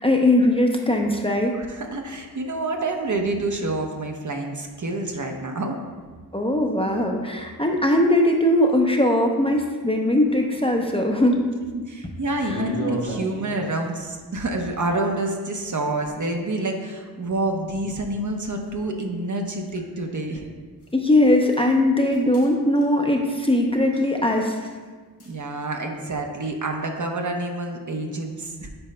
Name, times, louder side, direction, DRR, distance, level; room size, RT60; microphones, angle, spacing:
voice 1, 0.0-1.5 6.3-11.4 12.4-12.6 20.9-24.7, left 1 dB, 15° left, 1 dB, 0.6 m, -20 dB
voice 2, 1.6-5.8 11.7-20.5 25.3-28.7, right 2 dB, 50° right, 2 dB, 0.8 m, -28 dB
sound 1, 12.4-13.9 17.7-17.8 18.7-18.8 20.8-21.0 21.5-21.7 22.0-22.5 22.7-23.0 23.9-24.4 25.2-25.4, equal, 80° left, 1.7 m, -33 dB
8.7 x 5.2 x 2.2 m, 1.5 s
cardioid pair, 60°, 40 cm